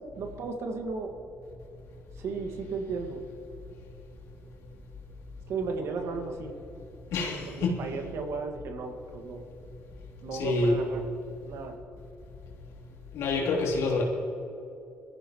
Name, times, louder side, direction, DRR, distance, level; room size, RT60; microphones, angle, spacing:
voice 1, 0.2-1.2 2.2-3.2 5.5-6.6 7.4-9.4 10.2-11.0 11.5-11.8, right 4 dB, 75° right, 4 dB, 1.9 m, -35 dB
voice 2, 7.1-7.8 10.3-10.8 13.1-14.0, left 3 dB, 85° left, -3 dB, 3.4 m, -27 dB
22.5 x 14.5 x 3.1 m, 2.9 s
cardioid pair, 85°, 5 cm